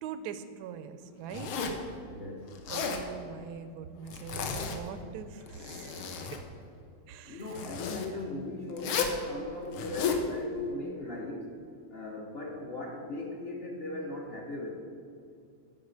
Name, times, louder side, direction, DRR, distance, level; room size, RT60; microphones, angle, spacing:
voice 1, 0.0-1.5 2.7-6.2 7.1-7.4, right 7 dB, 80° right, 11 dB, 0.9 m, -42 dB
Zipper (clothing), 1.3-1.9 2.5-3.0 4.1-4.8 5.4-6.4 7.5-8.1 8.8-9.2 9.7-10.2, left 6 dB, 90° left, 1.7 m, -33 dB
voice 2, 2.0-2.6 7.2-11.6 11.9-14.7, left 2 dB, 60° left, 0 dB, 0.6 m, -38 dB
9.5 x 5.0 x 6.3 m, 2.5 s
omnidirectional pair, 2.2 m